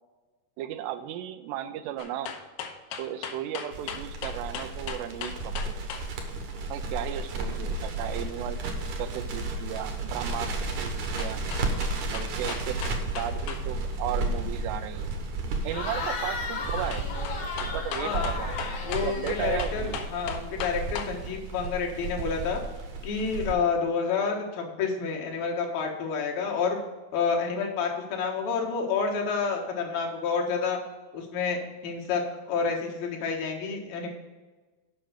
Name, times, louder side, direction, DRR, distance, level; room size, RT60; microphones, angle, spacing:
voice 1, 0.6-2.3 3.0-5.8 6.7-8.6 9.0-11.4 12.1-12.8 13.1-15.2 15.6-17.2 17.6-18.8 19.0-20.0, right 11 dB, 90° right, 9 dB, 2.8 m, -35 dB
sound 1, 2.0-6.1 11.2-13.7 13.9-14.0 16.9-21.1 21.6-21.7, left 7 dB, 85° left, 2.8 m, -37 dB
Crackle, 3.7-23.5, right 2 dB, 65° right, 1.9 m, -33 dB
Cheering / Crowd, 15.6-20.3, left 4 dB, 50° left, 2.0 m, -36 dB
voice 2, 18.0-18.3 18.8-22.6 23.0-26.8 27.1-30.8 31.1-34.1, left 5 dB, 65° left, 0 dB, 3.0 m, -29 dB
7.8 x 5.8 x 6.4 m, 1.3 s
omnidirectional pair, 4.8 m